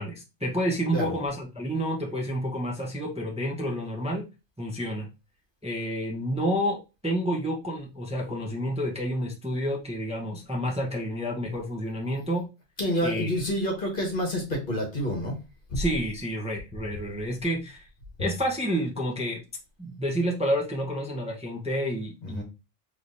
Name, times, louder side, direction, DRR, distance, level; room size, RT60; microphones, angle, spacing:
voice 1, 0.0-4.3 4.6-5.1 5.6-6.8 7.0-12.5 13.0-13.4 15.8-17.9 18.2-19.4 19.8-22.4, equal, 5° right, -1 dB, 0.8 m, -29 dB
voice 2, 12.8-15.3 15.7-15.8 22.2-22.4, equal, 45° left, 0 dB, 1.6 m, -28 dB
4.7 x 3.3 x 2.6 m, 0.27 s
omnidirectional pair, 1.2 m